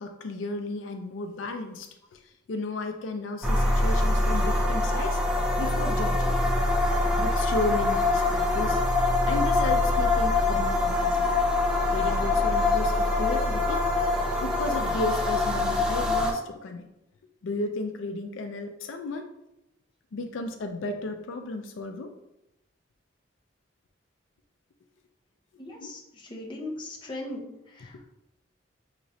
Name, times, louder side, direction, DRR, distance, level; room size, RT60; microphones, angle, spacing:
voice 1, 0.0-5.2 5.5-6.5 7.2-8.8 9.3-11.3 11.9-13.9 14.4-16.9 17.4-19.3 20.1-22.1 25.8-25.9 27.9-28.0, left 2 dB, 85° left, 6 dB, 0.4 m, -34 dB
sound 1, 3.4-16.3, left 2 dB, 5° right, 0.4 m, -24 dB
voice 2, 25.6-28.0, left 1 dB, 25° left, -2 dB, 0.8 m, -39 dB
5.8 x 3.0 x 2.6 m, 0.88 s
head